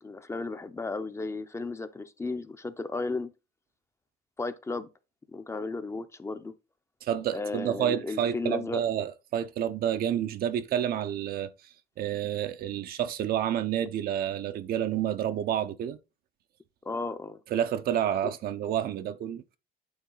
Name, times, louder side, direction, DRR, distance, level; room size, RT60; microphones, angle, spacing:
voice 1, 0.0-3.3 4.4-4.9 5.3-6.5 7.3-8.8 16.8-17.4, left 3 dB, 15° left, 0.6 m, -34 dB
voice 2, 7.0-11.5 12.0-16.0 17.5-19.4, right 10 dB, 65° right, 0.6 m, -29 dB
8.7 x 3.7 x 3.8 m
cardioid pair, 110°, 17 cm